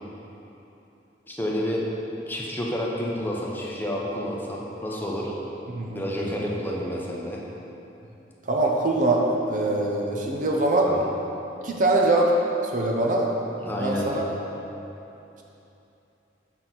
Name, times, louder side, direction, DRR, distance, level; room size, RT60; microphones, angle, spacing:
voice 1, 1.3-1.9 2.3-5.3 5.9-7.4 10.9-11.0 13.6-14.2, equal, 10° left, -3 dB, 0.7 m, -29 dB
voice 2, 5.7-6.1 8.5-10.9 11.6-12.4 12.6-13.3 13.8-14.3, right 2 dB, 45° right, -1 dB, 0.7 m, -23 dB
6.3 x 5.9 x 3.9 m, 2.9 s
head